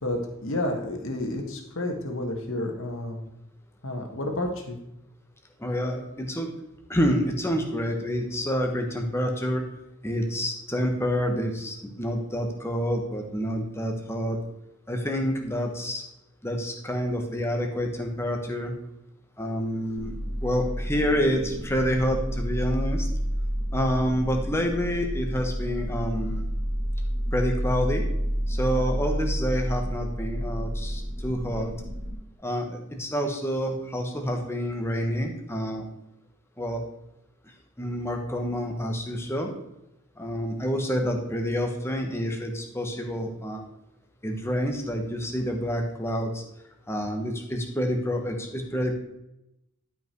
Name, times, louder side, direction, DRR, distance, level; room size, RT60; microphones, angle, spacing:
voice 1, 0.0-3.2 3.8-4.8, left 1 dB, 60° left, 2 dB, 1.9 m, -30 dB
voice 2, 5.6-6.5 6.9-9.6 10.0-14.4 14.9-16.0 16.4-18.7 19.4-20.1 20.4-23.1 23.7-26.5 27.3-28.0 28.5-31.7 32.4-35.9 36.6-36.8 37.8-39.5 40.2-43.6 44.2-46.4 46.9-48.9, equal, 10° left, 3 dB, 1.4 m, -28 dB
sound 1, 20.0-32.1, equal, 5° right, 2.6 m, -30 dB
12.0 x 5.7 x 4.7 m, 0.87 s
head